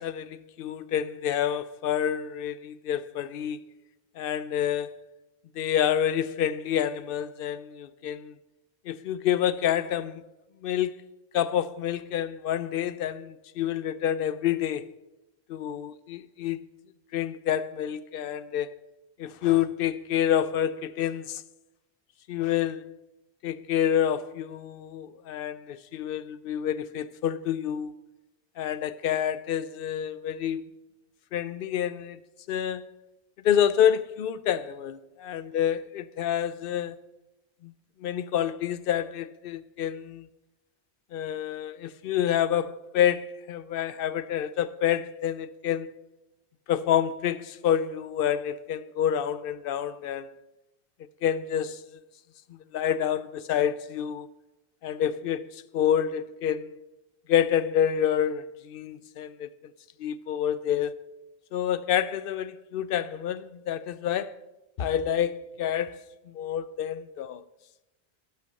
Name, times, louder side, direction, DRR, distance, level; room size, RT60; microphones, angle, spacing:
voice 1, 0.0-3.6 4.2-5.0 5.6-8.3 8.9-10.2 10.6-11.0 11.3-14.9 15.5-16.7 17.1-18.8 19.2-21.4 22.3-23.0 23.4-27.9 28.6-30.6 31.3-32.2 32.5-32.8 33.4-37.0 37.6-37.7 38.0-40.3 41.1-45.9 46.7-50.3 51.2-51.8 52.7-54.3 54.8-56.7 57.3-59.5 60.0-61.0 61.5-64.3 64.8-67.4, left 10 dB, 65° left, 0.7 m, -28 dB
12.5 x 5.8 x 6.4 m
omnidirectional pair, 1.1 m